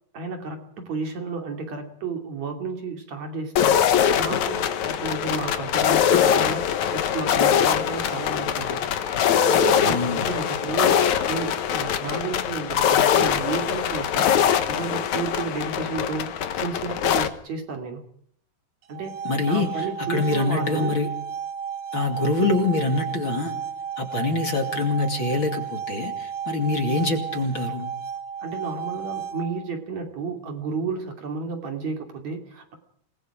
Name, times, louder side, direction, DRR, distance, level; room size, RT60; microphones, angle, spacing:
voice 1, 0.1-8.9 9.5-11.0 11.3-14.4 14.7-18.1 18.9-21.0 28.4-32.8, right 4 dB, 60° right, 4 dB, 4.0 m, -32 dB
sound 1, 3.6-17.3, left 9 dB, 65° left, 2.5 m, -22 dB
voice 2, 9.8-10.3 19.2-21.1 21.9-23.5 24.0-27.9, left 3 dB, 40° left, 4 dB, 3.2 m, -25 dB
sound 2, 18.8-29.8, right 7 dB, 80° right, 3.7 m, -33 dB
28.0 x 20.0 x 5.0 m, 0.64 s
omnidirectional pair, 3.7 m